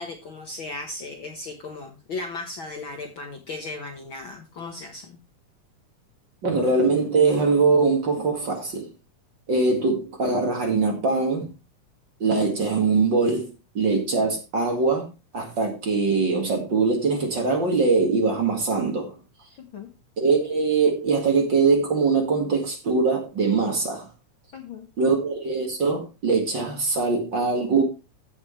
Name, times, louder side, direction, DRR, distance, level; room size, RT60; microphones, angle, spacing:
voice 1, 0.0-5.2 19.6-19.9 24.5-24.9, left 3 dB, 55° left, 1.5 m, -36 dB
voice 2, 6.4-8.9 9.5-11.5 12.2-15.1 15.3-19.2 20.2-24.1 25.0-27.8, right 4 dB, 40° right, 2.2 m, -22 dB
15.5 x 6.3 x 3.2 m
omnidirectional pair, 3.5 m